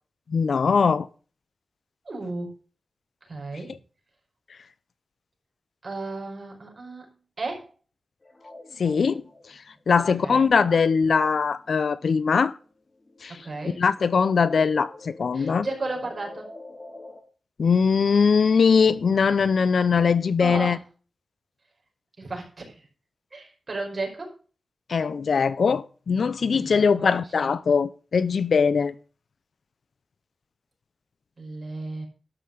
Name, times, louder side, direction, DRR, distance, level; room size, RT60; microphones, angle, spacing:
voice 1, 0.3-1.1 8.8-9.2 9.9-12.5 13.2-13.4 13.6-15.7 17.6-20.8 24.9-28.9, left 5 dB, 70° left, 0.6 m, -21 dB
voice 2, 2.0-2.5 3.2-3.7 5.8-7.1 7.4-7.7 10.2-10.5 13.4-13.8 15.3-16.5 20.4-20.8 22.2-22.9 23.3-24.3 26.5-27.1 27.4-27.5 31.4-32.1, right 3 dB, 45° right, 4.8 m, -34 dB
sound 1, 8.2-12.3 12.6-17.2, left 2 dB, 35° left, 3.6 m, -46 dB
12.5 x 5.7 x 6.4 m
wide cardioid pair, 100°, 0 cm